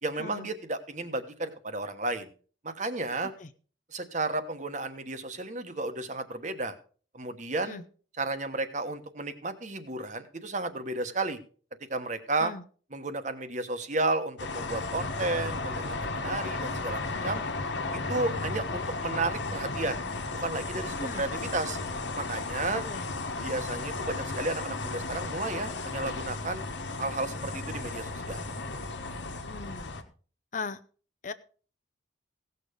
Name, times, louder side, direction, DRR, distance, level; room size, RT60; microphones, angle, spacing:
voice 1, 0.0-2.3 2.6-3.3 3.9-6.7 7.1-7.8 8.2-11.4 11.9-12.5 12.9-17.4 18.1-20.0 20.3-21.8 22.1-22.8 23.4-26.6 27.0-28.4, right 2 dB, 40° right, 9 dB, 1.2 m, -33 dB
sound 1, 14.4-30.0, left 3 dB, 70° left, 1.4 m, -34 dB
voice 2, 22.7-23.0 29.5-29.9 30.5-30.8 31.2-31.3, left 4 dB, 40° left, 11 dB, 0.6 m, -38 dB
17.0 x 6.7 x 5.1 m, 0.41 s
head